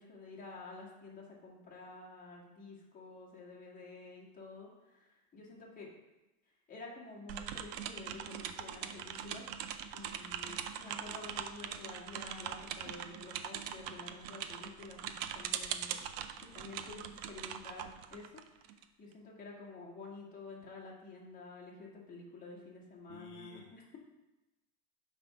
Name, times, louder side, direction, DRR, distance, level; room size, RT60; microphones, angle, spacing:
voice 1, 0.0-5.9 6.7-9.5 9.9-16.2 16.5-18.3 19.0-24.0, left 3 dB, 15° left, -4 dB, 1.7 m, -50 dB
sound 1, 7.3-18.8, right 9 dB, 45° right, 0.5 m, -42 dB
voice 2, 23.1-24.0, left 6 dB, 55° left, 0 dB, 1.1 m, -54 dB
9.1 x 3.6 x 5.7 m, 1.0 s
supercardioid pair, 165°, 45 cm